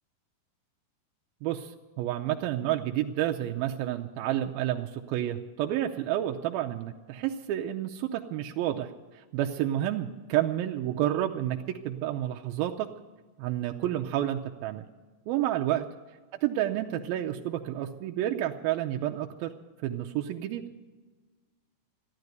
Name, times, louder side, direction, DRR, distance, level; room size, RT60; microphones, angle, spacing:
voice 1, 1.4-12.9 13.4-14.9 15.3-15.9 16.4-19.5 19.8-20.6, right 12 dB, 85° right, 3 dB, 2.5 m, -30 dB
15.0 x 12.0 x 8.1 m, 1.4 s
omnidirectional pair, 4.3 m